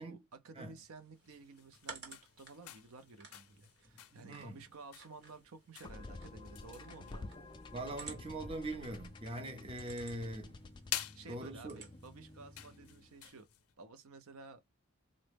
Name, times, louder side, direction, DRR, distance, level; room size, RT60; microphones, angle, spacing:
voice 1, 0.0-7.3 11.0-13.5 13.8-14.8, right 3 dB, 75° right, 0.6 m, -54 dB
sound 1, 0.8-13.3, right 4 dB, 50° right, 1.0 m, -57 dB
sound 2, 1.1-13.7, left 12 dB, 80° left, 0.5 m, -50 dB
voice 2, 4.1-4.6 7.7-10.6 11.3-11.8, right 1 dB, 25° right, 0.6 m, -42 dB
sound 3, 5.8-13.2, left 2 dB, 20° left, 0.3 m, -51 dB
3.8 x 2.1 x 3.3 m
head